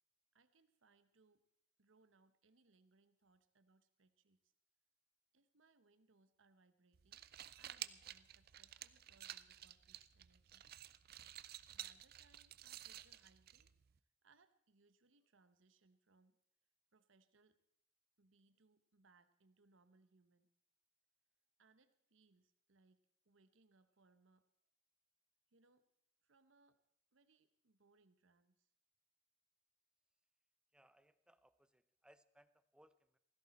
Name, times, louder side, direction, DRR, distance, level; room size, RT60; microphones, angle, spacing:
voice 1, 0.3-1.4 1.8-4.5 5.3-7.3 7.6-10.6 11.7-16.4 16.9-17.6 18.2-20.5 21.6-24.5 25.5-25.9 26.2-26.8 27.1-28.7, right 3 dB, 75° right, 11 dB, 0.9 m, -73 dB
sound 1, 6.9-14.0, right 12 dB, 50° right, 0.5 m, -53 dB
voice 2, 30.7-33.2, right 1 dB, 5° right, 13 dB, 0.6 m, -69 dB
17.0 x 15.5 x 4.2 m, 0.77 s
head